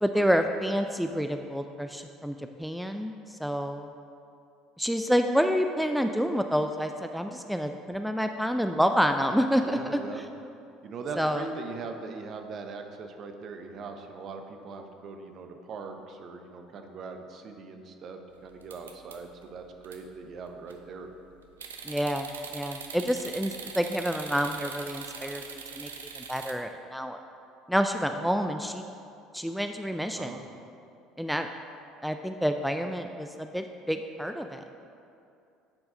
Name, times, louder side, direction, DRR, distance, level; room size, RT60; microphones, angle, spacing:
voice 1, 0.0-3.9 4.8-10.0 11.2-11.5 21.8-25.9 26.2-27.2 27.7-28.8 29.3-30.3 31.2-31.5 32.0-34.6, equal, ahead, 6 dB, 0.3 m, -28 dB
voice 2, 9.6-10.2 10.8-21.1 30.2-30.4, right 4 dB, 50° right, 5 dB, 0.7 m, -40 dB
sound 1, 18.6-19.4 19.8-20.0 20.4-20.9 21.6-26.5, right 6 dB, 85° right, 0.4 m, -42 dB
9.6 x 4.7 x 3.9 m, 2.6 s
hypercardioid pair, 60°, 0 cm